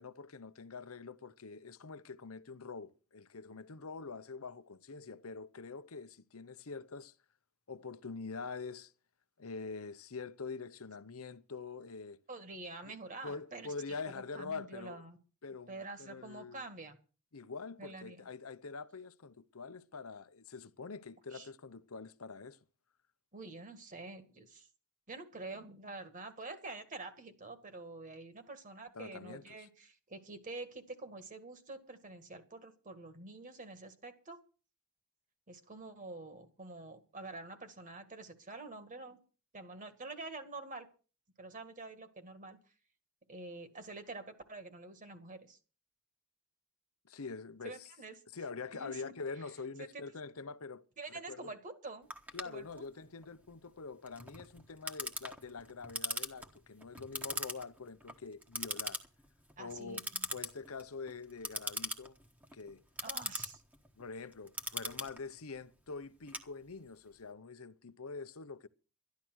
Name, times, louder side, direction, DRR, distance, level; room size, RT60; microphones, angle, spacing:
voice 1, 0.0-7.1 7.7-8.9 9.4-12.2 12.9-13.0 13.2-15.0 15.4-16.6 17.3-22.6 28.9-29.7 47.0-47.9 48.3-50.8 51.3-51.5 52.3-59.0 59.6-60.0 60.3-62.2 62.5-62.8 64.0-68.7, left 4 dB, 70° left, 0.8 m, -45 dB
voice 2, 12.3-13.7 14.1-15.2 15.7-17.0 17.8-18.3 21.3-21.5 23.3-24.7 25.1-34.4 35.5-39.2 39.5-40.9 41.4-42.6 43.3-45.6 47.6-48.1 48.7-49.1 51.0-52.1 52.4-52.7 59.6-60.3 63.0-63.6, right 3 dB, 35° right, 2.0 m, -47 dB
Clock, 52.1-67.0, equal, 5° right, 1.3 m, -42 dB
12.5 x 11.5 x 6.3 m
head